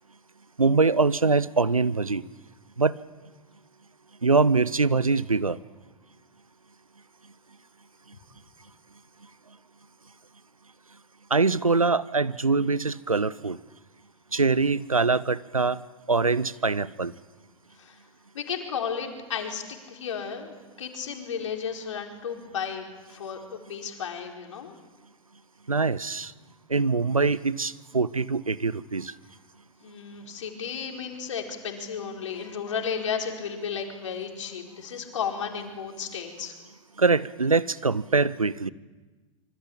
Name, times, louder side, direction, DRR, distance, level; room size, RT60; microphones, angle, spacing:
voice 1, 0.6-2.2 2.8-3.0 4.2-5.6 11.3-13.6 14.3-15.8 16.1-17.1 25.7-26.3 26.7-29.1 37.0-38.7, right 4 dB, 85° right, 19 dB, 0.8 m, -23 dB
voice 2, 18.3-19.6 19.9-24.8 29.8-36.5, left 7 dB, 65° left, 2 dB, 4.7 m, -33 dB
26.0 x 24.5 x 8.8 m, 1.3 s
figure-of-eight pair, 95°, 17 cm